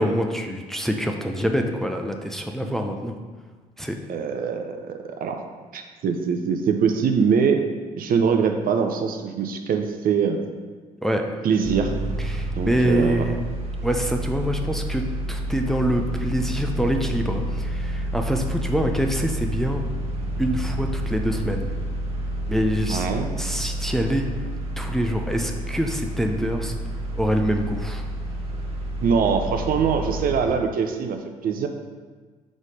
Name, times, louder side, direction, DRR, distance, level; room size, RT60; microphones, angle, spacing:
voice 1, 0.0-3.2 3.8-4.0 11.0-11.2 12.2-13.3 13.8-15.0 15.3-19.8 20.4-21.7 22.5-23.1 23.4-24.3 24.8-26.7 27.2-28.0, equal, ahead, 3 dB, 0.6 m, -25 dB
voice 2, 4.1-5.4 5.7-7.6 8.0-10.4 11.4-11.9 12.6-13.2 22.9-23.3 29.0-31.7, right 6 dB, 50° right, 5 dB, 0.7 m, -23 dB
sound 1, 11.6-30.4, right 1 dB, 35° right, 1.2 m, -29 dB
4.9 x 4.0 x 5.2 m, 1.4 s
hypercardioid pair, 55°, 18 cm